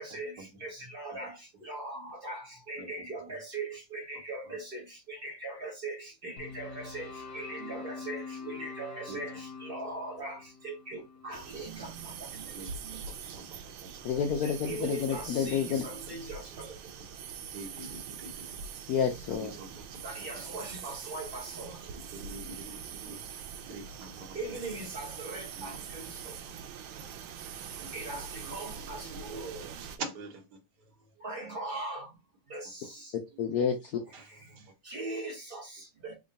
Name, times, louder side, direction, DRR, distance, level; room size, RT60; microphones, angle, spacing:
voice 1, 0.0-1.4 1.6-4.8 5.1-7.1 7.3-12.1 14.4-16.7 20.0-21.8 24.3-26.1 27.9-29.7 31.2-32.1 32.5-33.0 34.9-36.1, right 2 dB, 45° right, 0.7 m, -40 dB
sound 1, 6.4-12.6, left 4 dB, 50° left, 1.2 m, -45 dB
sound 2, 11.3-30.0, right 7 dB, 90° right, 1.4 m, -43 dB
voice 2, 12.5-14.0 15.4-15.5 17.5-18.6 19.4-20.4 21.9-23.3 23.7-24.3 25.6-25.8 26.9-28.0 29.1-29.2 29.8-30.9 34.1-34.7, right 3 dB, 60° right, 1.5 m, -46 dB
voice 3, 14.0-15.8 18.9-19.5 33.4-33.9, left 7 dB, 75° left, 0.9 m, -29 dB
3.7 x 2.2 x 3.9 m
omnidirectional pair, 2.2 m